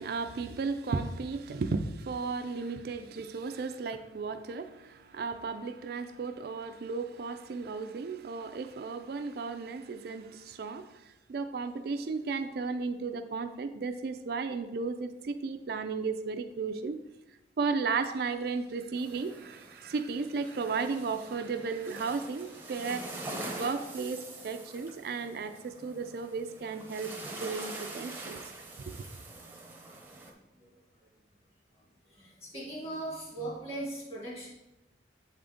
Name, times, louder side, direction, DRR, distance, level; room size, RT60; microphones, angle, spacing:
voice 1, 0.0-17.0 17.6-23.1 23.5-27.1 27.4-28.4 28.9-29.0, right 4 dB, 55° right, 8 dB, 0.4 m, -34 dB
sound 1, 19.0-30.3, right 2 dB, 10° right, 0.6 m, -44 dB
voice 2, 30.4-30.7 32.1-34.5, right 1 dB, 35° left, -4 dB, 2.0 m, -39 dB
7.9 x 3.8 x 3.5 m, 0.97 s
head